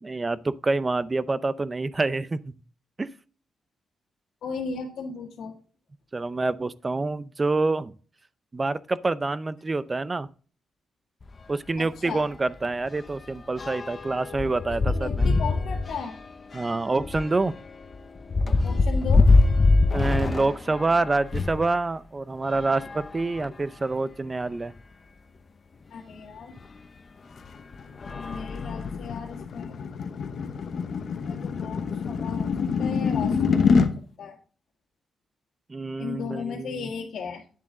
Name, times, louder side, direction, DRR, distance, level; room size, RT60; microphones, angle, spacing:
voice 1, 0.0-2.4 3.0-3.1 6.1-7.9 8.5-10.3 11.5-15.3 16.5-17.6 19.9-24.7 35.7-36.9, right 3 dB, 25° right, 0.5 m, -27 dB
voice 2, 4.4-5.5 11.8-12.2 14.9-16.1 18.6-19.2 25.9-26.5 28.1-29.7 31.3-32.5 32.8-33.4 33.7-33.9 34.2-34.3 36.0-37.4, left 5 dB, 75° left, 1.8 m, -35 dB
sound 1, 11.2-11.4 11.8-11.9 12.2-21.7 22.4-23.7 24.4-24.5 24.8-24.9 26.6-26.7 27.3-27.6 28.0-29.2, left 3 dB, 35° left, 0.8 m, -25 dB
sound 2, 27.4-33.9, left 5 dB, 60° left, 1.0 m, -26 dB
10.5 x 7.2 x 3.8 m
cardioid pair, 120°, 0 cm